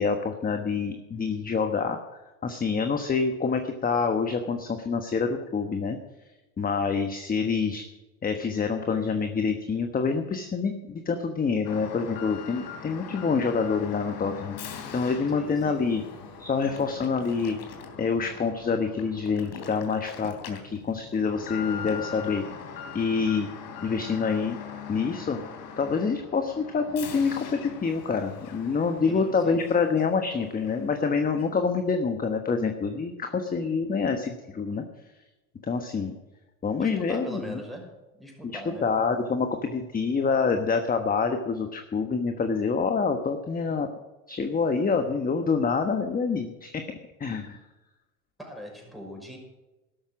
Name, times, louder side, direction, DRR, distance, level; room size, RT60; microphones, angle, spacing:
voice 1, 0.0-2.0 2.4-6.0 6.6-7.8 8.2-14.6 14.9-16.0 16.4-17.6 18.0-22.4 22.9-23.5 23.8-24.6 24.9-25.4 25.8-34.8 35.6-36.1 36.6-37.6 38.4-38.5 38.8-43.9 44.3-46.8 47.2-47.6, left 5 dB, 20° left, 6 dB, 1.3 m, -26 dB
Alarm, 11.7-30.3 30.6-30.8 31.4-31.5, left 6 dB, 50° left, 3.4 m, -41 dB
voice 2, 15.3-15.9 29.1-29.6 36.8-38.9 48.4-49.4, equal, ahead, 0 dB, 5.9 m, -41 dB
13.5 x 12.0 x 6.3 m, 1.1 s
supercardioid pair, 105°, 44 cm